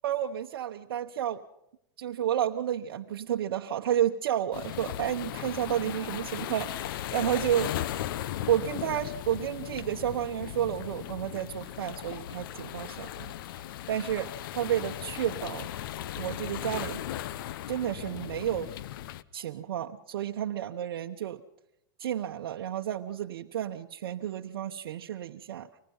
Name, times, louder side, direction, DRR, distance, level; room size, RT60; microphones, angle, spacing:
voice 1, 0.0-1.4 2.0-7.7 8.5-13.3 13.9-15.7 16.1-17.0 17.7-18.7 19.3-21.4 22.0-25.7, right 10 dB, 75° right, 2 dB, 1.0 m, -31 dB
sound 1, 4.5-19.2, left 12 dB, 65° left, 0.9 m, -37 dB
25.0 x 19.5 x 5.6 m, 0.80 s
hypercardioid pair, 125°, 12 cm